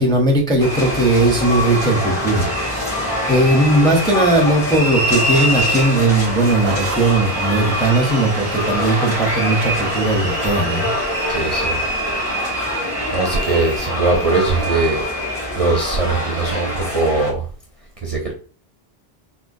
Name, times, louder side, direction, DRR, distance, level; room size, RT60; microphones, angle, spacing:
voice 1, 0.0-2.5 2.9-10.9, right 2 dB, 5° left, 0 dB, 0.6 m, -18 dB
sound 1, 0.6-17.3, left 1 dB, 60° left, 1.8 m, -23 dB
Applause / Crowd, 6.1-13.5, right 5 dB, 85° right, 0.9 m, -32 dB
voice 2, 11.3-11.8 13.1-15.0 15.6-17.5 18.0-18.3, right 3 dB, 45° right, 0 dB, 0.5 m, -20 dB
3.7 x 2.3 x 2.6 m, 0.39 s
omnidirectional pair, 1.0 m